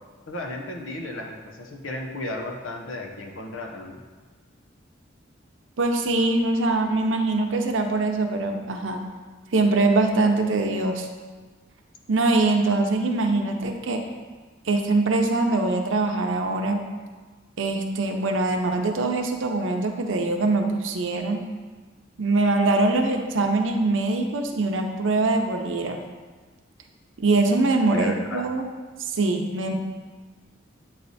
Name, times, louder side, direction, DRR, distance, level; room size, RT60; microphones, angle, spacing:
voice 1, 0.3-4.0 27.9-28.4, left 2 dB, 90° left, 1 dB, 0.9 m, -34 dB
voice 2, 5.8-9.0 9.5-11.1 12.1-14.1 14.7-16.8 17.6-21.4 22.2-26.0 27.2-28.6 29.0-29.8, right 2 dB, 80° right, 4 dB, 0.7 m, -23 dB
8.7 x 3.3 x 4.1 m, 1.4 s
head